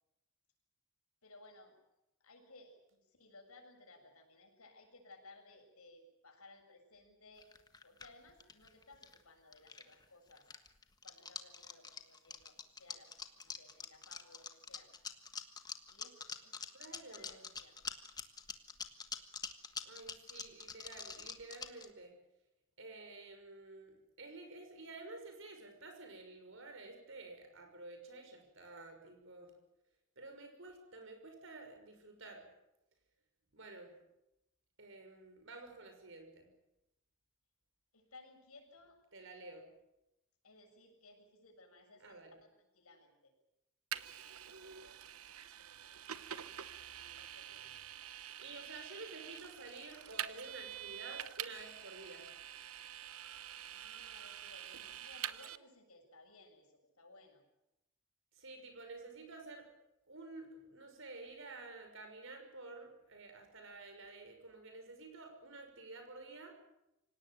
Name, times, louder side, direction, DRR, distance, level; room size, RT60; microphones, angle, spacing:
voice 1, 1.2-1.7 2.2-7.5 7.8-10.5 11.0-14.9 15.9-16.6 16.8-17.8 37.9-39.0 40.4-42.2 42.6-43.3 47.1-47.8 53.7-57.4, left 2 dB, 85° left, 3 dB, 7.3 m, -60 dB
sound 1, 7.4-9.2 9.5-10.0 10.3-21.9, left 5 dB, 20° left, 1.4 m, -45 dB
voice 2, 16.7-17.5 19.8-22.1 22.8-29.5 30.2-32.5 33.5-33.9 34.8-36.5 39.1-39.7 42.0-42.4 48.4-52.3 58.3-59.7 60.1-66.5, right 2 dB, 60° right, 5 dB, 6.0 m, -51 dB
Vehicle, 43.9-55.6, right 10 dB, 80° right, 1.0 m, -46 dB
25.5 x 18.0 x 9.2 m, 0.90 s
head